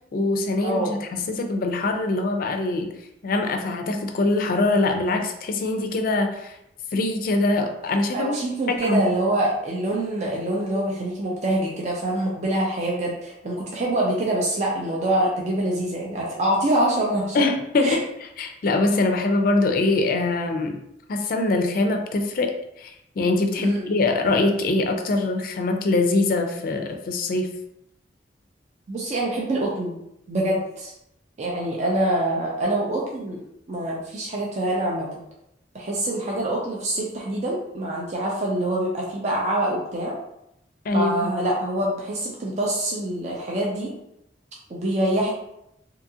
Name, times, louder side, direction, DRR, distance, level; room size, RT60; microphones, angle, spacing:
voice 1, 0.1-2.9 3.2-6.6 6.9-8.3 8.7-9.1 17.3-18.0 18.4-20.8 21.1-27.5 40.8-41.1, left 2 dB, 50° left, 5 dB, 0.4 m, -23 dB
voice 2, 0.6-1.0 8.1-17.4 17.8-18.0 23.6-23.8 28.9-30.0 30.3-30.9 31.4-33.4 33.7-35.1 35.7-40.2 40.9-43.9 44.7-45.3, right 1 dB, 40° right, -3 dB, 0.4 m, -25 dB
2.7 x 2.4 x 2.7 m, 0.81 s
head